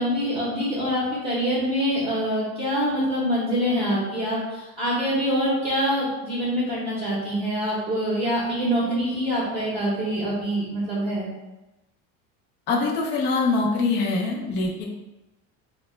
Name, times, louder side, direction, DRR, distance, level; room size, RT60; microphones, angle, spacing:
voice 1, 0.0-11.3, equal, 20° right, -8 dB, 0.7 m, -25 dB
voice 2, 12.7-14.8, left 3 dB, 35° left, -2 dB, 0.4 m, -23 dB
2.8 x 2.1 x 4.1 m, 1.0 s
cardioid pair, 175°, 34 cm